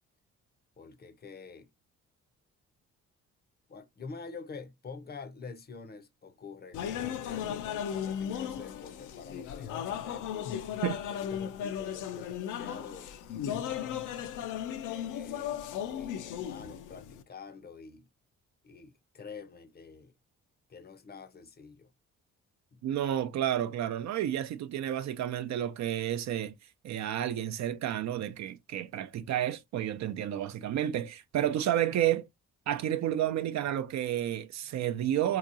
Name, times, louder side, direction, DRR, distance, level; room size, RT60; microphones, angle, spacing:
voice 1, 0.8-1.7 3.7-7.6 7.8-10.7 11.1-13.1 13.7-14.0 14.8-18.1 18.6-20.1 20.7-21.9 22.7-22.8, left 5 dB, 35° left, 0.6 m, -47 dB
sound 1, 6.7-17.2, left 9 dB, 85° left, 0.6 m, -36 dB
voice 2, 22.8-26.6 26.8-32.3 32.7-35.4, right 11 dB, 65° right, 0.5 m, -31 dB
3.6 x 2.9 x 2.5 m
cardioid pair, 90°, 30 cm